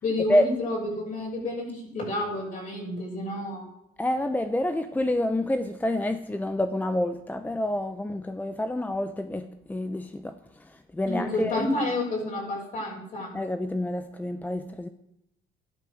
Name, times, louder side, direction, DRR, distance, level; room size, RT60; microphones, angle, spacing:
voice 1, 0.0-3.7 11.1-13.3, left 1 dB, 50° left, 6.9 m, -30 dB
voice 2, 4.0-11.7 13.3-14.9, left 1 dB, 10° left, 0.8 m, -28 dB
13.0 x 11.5 x 6.5 m
cardioid pair, 110°, 17 cm